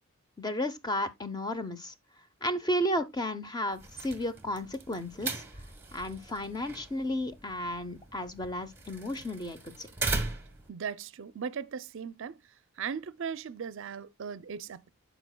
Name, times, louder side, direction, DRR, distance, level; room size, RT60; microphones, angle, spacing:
voice 1, 0.4-1.9 2.4-5.4 5.9-9.9, left 1 dB, 20° left, 0.7 m, -33 dB
sound 1, 3.7-10.7, right 3 dB, 10° right, 1.2 m, -39 dB
voice 2, 10.7-12.4 12.8-14.9, right 6 dB, 60° right, 0.4 m, -38 dB
13.0 x 5.0 x 2.2 m
head